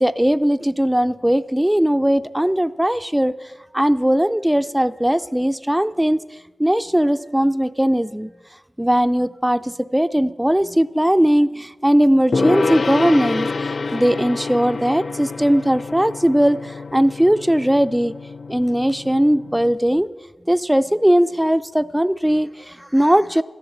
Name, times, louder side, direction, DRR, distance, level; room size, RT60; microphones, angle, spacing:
voice 1, 0.0-3.3 3.7-6.2 6.6-8.3 8.8-18.1 18.5-20.1 20.5-23.4, equal, 5° right, 10 dB, 0.4 m, -19 dB
Gong, 12.3-19.8, left 4 dB, 65° left, 0.4 m, -27 dB
13.5 x 11.0 x 8.0 m, 1.2 s
wide cardioid pair, 70°, 0 cm